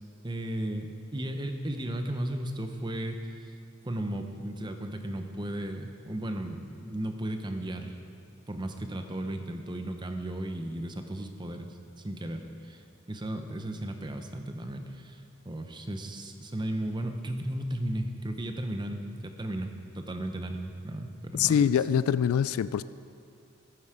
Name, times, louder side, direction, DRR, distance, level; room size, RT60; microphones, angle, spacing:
voice 1, 0.2-3.5 3.8-8.0 8.5-11.8 12.0-15.2 15.5-21.7, right 1 dB, 20° right, 6 dB, 0.8 m, -35 dB
voice 2, 21.3-22.8, left 8 dB, 90° left, 17 dB, 0.3 m, -24 dB
14.0 x 9.4 x 5.0 m, 2.4 s
head